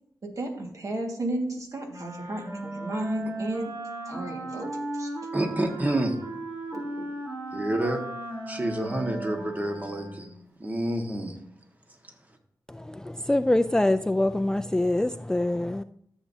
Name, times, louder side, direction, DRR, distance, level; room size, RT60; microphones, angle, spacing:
voice 1, 0.2-3.7 4.1-5.1 6.7-7.1, right 1 dB, 55° right, 1.8 m, -33 dB
Wind instrument woodwind instrument, 1.9-10.4, right 2 dB, 90° right, 3.5 m, -36 dB
voice 2, 5.3-6.2 7.5-8.0 8.5-10.3 10.6-11.4, right 1 dB, 25° right, 1.5 m, -28 dB
voice 3, 12.7-15.8, left 1 dB, 10° left, 0.3 m, -25 dB
13.5 x 7.2 x 2.7 m
wide cardioid pair, 75°, 7 cm